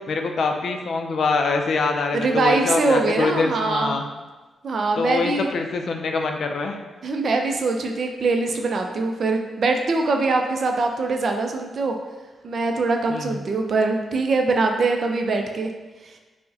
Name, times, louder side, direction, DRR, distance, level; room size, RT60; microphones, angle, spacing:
voice 1, 0.1-4.1 5.0-6.8 13.1-13.4, left 4 dB, 65° left, 4 dB, 0.3 m, -24 dB
voice 2, 2.1-4.0 4.6-5.5 7.0-12.0 12.4-15.7 16.0-16.2, right 3 dB, 55° right, 3 dB, 0.4 m, -23 dB
4.4 x 2.1 x 2.7 m, 1.2 s
cardioid pair, 100°, 0 cm